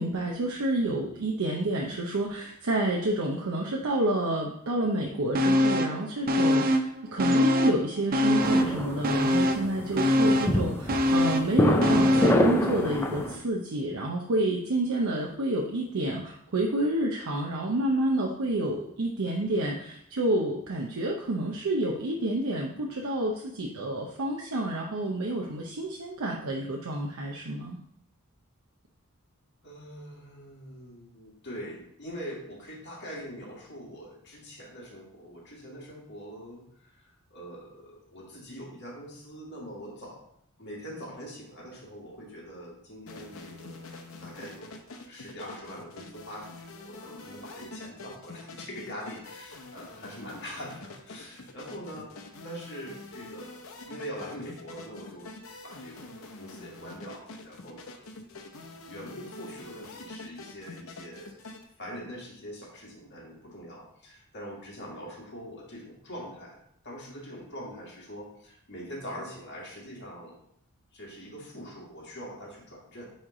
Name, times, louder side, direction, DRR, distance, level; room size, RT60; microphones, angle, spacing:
voice 1, 0.0-27.8, right 1 dB, 85° right, -1 dB, 0.7 m, -29 dB
sound 1, 5.3-6.0 6.3-7.8 8.1-12.5 12.8-12.9, left 1 dB, 45° right, 0.5 m, -24 dB
sound 2, 8.4-13.4, equal, 10° left, 0.5 m, -26 dB
voice 2, 29.6-40.2 40.6-43.9 44.2-55.3 55.6-58.0 58.9-61.4 61.8-66.6 66.8-70.4 70.9-73.0, equal, 55° left, -3 dB, 1.9 m, -43 dB
sound 3, 43.1-61.6, left 3 dB, 70° left, 0.8 m, -45 dB
8.7 x 3.2 x 3.7 m, 0.70 s
head